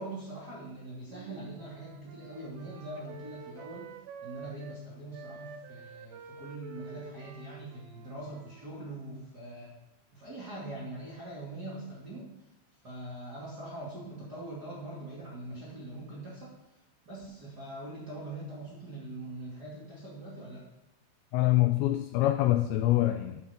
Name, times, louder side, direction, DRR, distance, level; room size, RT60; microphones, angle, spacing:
voice 1, 0.0-3.9 4.2-9.7 10.1-12.3 12.8-16.5 17.1-20.6, right 1 dB, 30° right, -6 dB, 2.0 m, -42 dB
Wind instrument woodwind instrument, 1.1-4.8 5.1-9.2, right 6 dB, 85° right, 3.4 m, -49 dB
voice 2, 21.3-23.4, left 15 dB, 90° left, 7 dB, 2.5 m, -25 dB
10.5 x 8.3 x 5.9 m, 0.91 s
omnidirectional pair, 5.6 m